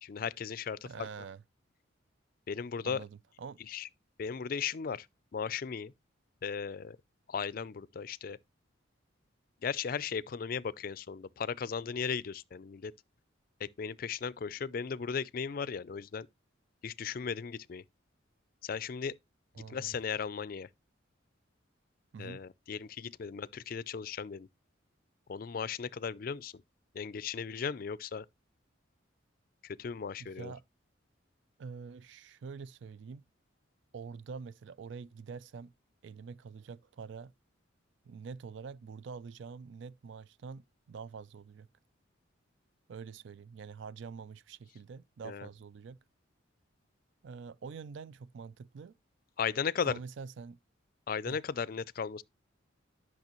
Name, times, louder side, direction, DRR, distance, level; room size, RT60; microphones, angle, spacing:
voice 1, 0.0-1.1 2.5-3.0 3.7-3.9 4.2-5.1 5.3-5.9 6.4-7.0 7.3-8.4 9.6-12.9 13.6-16.3 16.8-17.8 18.6-19.1 19.7-20.7 22.2-24.5 25.3-26.5 26.9-28.3 29.6-30.5 45.2-45.5 49.4-50.0 51.1-52.2, left 6 dB, 45° left, 0.4 m, -36 dB
voice 2, 0.9-1.4 2.8-3.6 19.5-20.0 22.1-22.4 30.2-30.6 31.6-33.2 33.9-35.7 36.0-37.3 38.0-41.7 42.9-46.0 47.2-49.0 49.9-50.6 51.2-51.4, right 5 dB, 70° right, 0.4 m, -46 dB
10.5 x 6.1 x 3.0 m
head